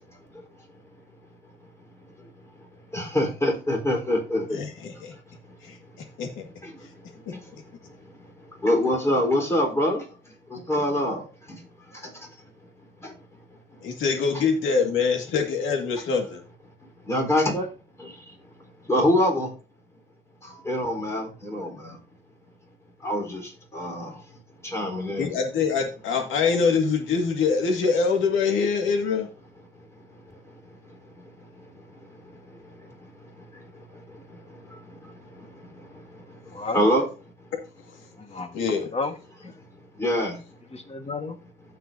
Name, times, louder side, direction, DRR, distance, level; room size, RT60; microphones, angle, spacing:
voice 1, 2.9-4.6 8.6-10.0 10.5-11.2 14.3-14.4 17.1-17.7 18.0-18.1 18.9-19.5 20.7-21.9 23.0-23.4 23.7-24.1 24.7-25.3 36.7-37.1 40.0-40.4, left 1 dB, 15° left, 4.2 m, -24 dB
voice 2, 4.5-5.1 5.6-5.8 6.2-6.5 7.5-7.6 13.8-16.4 25.2-29.3 38.5-38.8, left 5 dB, 85° left, 2.1 m, -24 dB
voice 3, 36.5-36.8 38.2-38.6 38.9-39.5 40.7-41.4, left 3 dB, 30° left, 1.6 m, -33 dB
16.0 x 5.6 x 2.8 m
cardioid pair, 90°, 20 cm